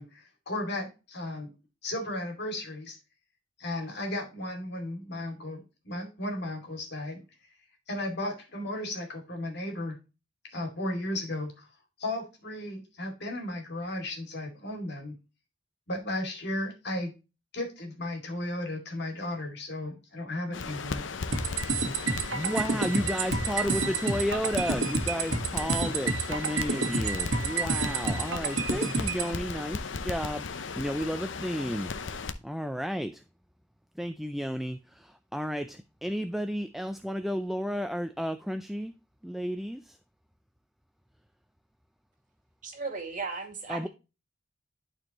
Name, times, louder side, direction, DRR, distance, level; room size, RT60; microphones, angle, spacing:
voice 1, 0.0-1.5 1.8-3.0 3.6-7.2 7.9-10.0 10.5-11.6 12.0-15.2 15.9-17.1 17.5-21.0, left 1 dB, 65° left, 2.5 m, -35 dB
Crackle, 20.5-32.3, left 4 dB, 85° left, 0.7 m, -36 dB
sound 1, 21.3-29.3, right 4 dB, 80° right, 1.1 m, -29 dB
voice 2, 22.3-31.9 32.4-33.2 34.0-38.9 39.2-40.0 43.7-43.9, equal, ahead, 0.3 m, -32 dB
voice 3, 42.6-43.9, right 4 dB, 45° right, 2.1 m, -36 dB
11.5 x 4.4 x 2.9 m
head